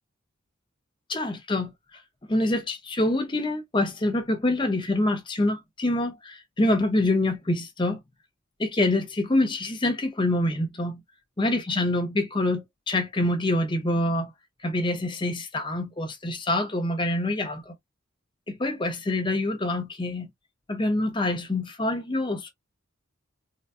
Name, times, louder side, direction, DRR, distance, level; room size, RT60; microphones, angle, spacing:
voice 1, 1.1-1.7 2.3-8.0 8.6-11.0 11.4-14.3 14.6-17.7 18.5-20.3 20.7-22.5, left 1 dB, 25° left, 0.7 m, -26 dB
3.9 x 2.2 x 2.4 m
head